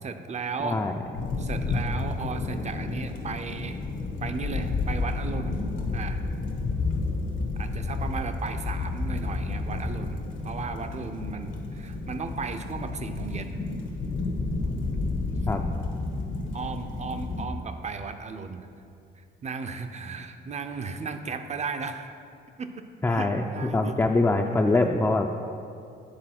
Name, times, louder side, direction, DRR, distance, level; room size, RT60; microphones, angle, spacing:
voice 1, 0.0-0.8 1.4-3.8 4.2-5.6 5.9-6.2 7.6-13.6 16.5-18.7 19.4-22.1 22.6-24.0 24.7-24.9, right 5 dB, 35° right, 8 dB, 0.6 m, -35 dB
voice 2, 0.6-0.9 15.5-15.6 23.0-23.4 23.7-25.3, left 2 dB, 10° left, 3 dB, 0.4 m, -23 dB
sound 1, 1.1-17.5, left 3 dB, 80° left, 1.2 m, -31 dB
8.8 x 4.2 x 5.8 m, 2.5 s
cardioid pair, 90°, 20 cm